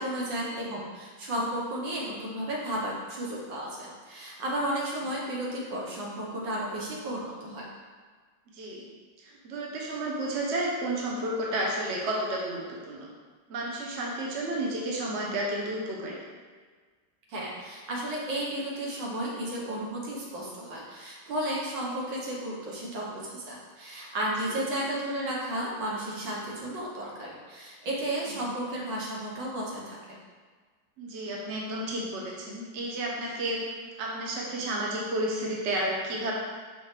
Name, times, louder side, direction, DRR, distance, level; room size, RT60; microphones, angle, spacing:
voice 1, 0.0-7.7 17.3-30.2, right 1 dB, 75° right, -4 dB, 1.9 m, -33 dB
voice 2, 8.5-8.8 9.2-12.6 12.9-13.1 13.5-16.2 24.4-24.5 31.0-33.6 34.0-36.3, right 1 dB, 45° right, -2 dB, 1.0 m, -31 dB
5.6 x 5.2 x 3.3 m, 1.5 s
omnidirectional pair, 2.0 m